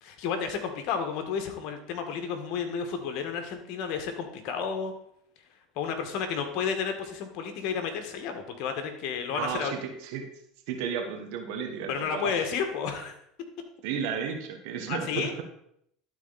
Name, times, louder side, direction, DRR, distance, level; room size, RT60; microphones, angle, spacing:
voice 1, 0.0-4.9 5.8-9.8 11.9-13.1 14.9-15.3, left 6 dB, 60° left, 5 dB, 1.7 m, -31 dB
voice 2, 9.3-10.3 10.7-12.3 13.8-15.4, right 7 dB, 70° right, 3 dB, 1.6 m, -33 dB
12.0 x 4.4 x 4.2 m, 0.72 s
hypercardioid pair, 95°, 0 cm